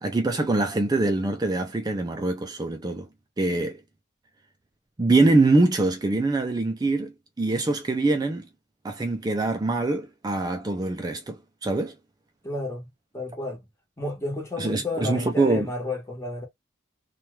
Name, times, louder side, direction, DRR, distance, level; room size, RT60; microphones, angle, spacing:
voice 1, 0.0-3.1 3.4-3.8 5.0-8.5 8.8-11.9 14.6-15.7, right 2 dB, 20° right, 0.3 m, -24 dB
voice 2, 12.4-12.9 13.1-13.6 14.0-16.5, left 2 dB, 15° left, 1.1 m, -31 dB
2.9 x 2.3 x 3.0 m
head